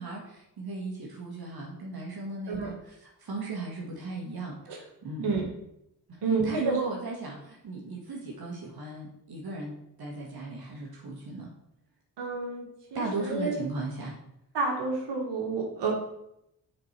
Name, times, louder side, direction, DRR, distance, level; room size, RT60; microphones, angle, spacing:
voice 1, 0.0-5.4 6.3-11.5 12.9-14.2, right 3 dB, 60° right, -2 dB, 1.9 m, -36 dB
voice 2, 6.2-6.8 12.2-12.6 12.9-13.6 14.5-15.9, right 4 dB, 85° right, 0 dB, 1.8 m, -29 dB
7.4 x 4.7 x 5.9 m, 0.82 s
supercardioid pair, 50°, 41 cm